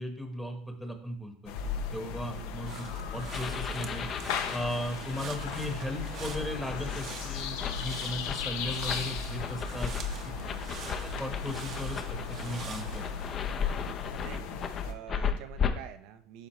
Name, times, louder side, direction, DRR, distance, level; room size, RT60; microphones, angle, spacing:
voice 1, 0.0-1.5 1.9-2.8 3.1-4.1 4.5-9.9 10.2-10.3 11.0-13.0, equal, ahead, 4 dB, 1.1 m, -37 dB
sound 1, 1.5-14.9, left 6 dB, 75° left, 0.8 m, -37 dB
voice 2, 2.3-2.7 10.3-10.7 14.2-14.5 14.8-16.5, right 11 dB, 65° right, 10 dB, 0.7 m, -47 dB
sound 2, 2.7-13.3, right 6 dB, 45° right, 0.9 m, -46 dB
sound 3, 3.3-15.7, left 7 dB, 35° left, 0.7 m, -37 dB
11.5 x 4.1 x 3.1 m, 0.65 s
supercardioid pair, 125°, 0 cm